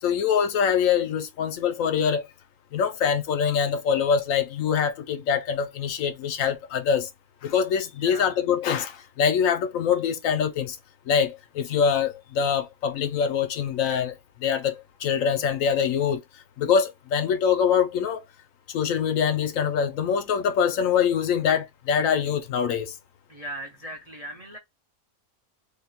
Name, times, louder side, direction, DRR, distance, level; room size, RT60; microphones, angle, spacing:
voice 1, 0.0-2.2 2.7-7.1 7.4-10.8 11.1-14.1 14.4-16.2 16.6-18.2 18.7-22.9, left 7 dB, 80° left, 1.1 m, -24 dB
voice 2, 8.0-8.4 23.3-24.6, right 1 dB, 50° right, 0.4 m, -38 dB
3.5 x 2.3 x 4.0 m
omnidirectional pair, 1.4 m